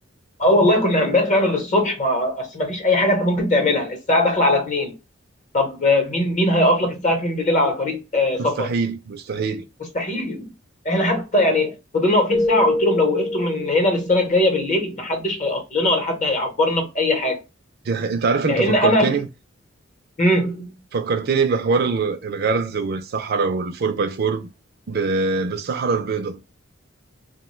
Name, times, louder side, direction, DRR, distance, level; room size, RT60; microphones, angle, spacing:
voice 1, 0.4-4.9 5.5-8.7 9.9-10.5 10.8-17.4 18.5-19.1 20.2-20.8, left 1 dB, 35° left, 0.8 m, -20 dB
voice 2, 8.4-9.6 17.8-19.3 20.9-24.5 24.9-26.4, right 4 dB, 50° right, 0.4 m, -23 dB
Keyboard (musical), 12.3-14.3, left 1 dB, 10° left, 0.5 m, -25 dB
2.9 x 2.2 x 3.0 m
head